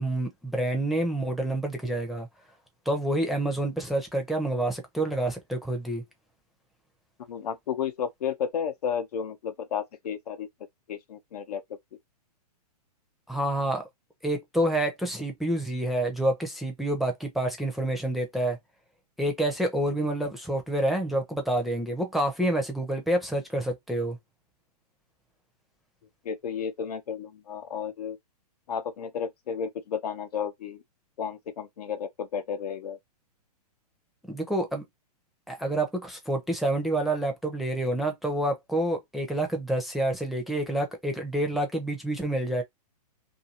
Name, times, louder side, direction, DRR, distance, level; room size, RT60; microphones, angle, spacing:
voice 1, 0.0-2.3 2.9-6.0 13.3-13.8 14.2-18.6 19.2-24.2 34.3-34.8 35.5-42.6, right 1 dB, ahead, 0.6 m, -28 dB
voice 2, 7.3-10.5 10.9-11.6 26.2-28.2 28.7-30.8 31.2-33.0, left 7 dB, 70° left, 0.8 m, -32 dB
2.6 x 2.6 x 2.8 m
hypercardioid pair, 135°, 21 cm